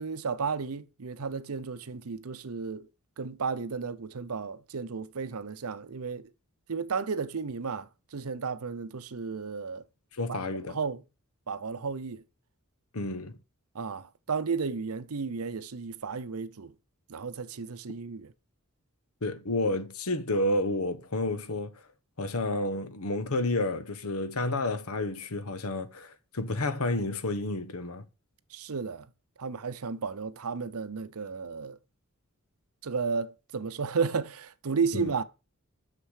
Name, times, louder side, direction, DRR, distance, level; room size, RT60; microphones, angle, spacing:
voice 1, 0.0-2.9 3.2-6.3 6.7-9.8 10.3-10.4 10.7-11.0 11.5-12.2 13.7-16.7 17.1-18.3 28.5-29.1 29.4-31.8 32.8-35.2, right 5 dB, 85° right, 0.7 m, -33 dB
voice 2, 10.2-10.8 12.9-13.4 19.2-21.7 22.2-28.0 34.9-35.1, left 2 dB, 80° left, 1.1 m, -30 dB
6.7 x 6.7 x 6.3 m
head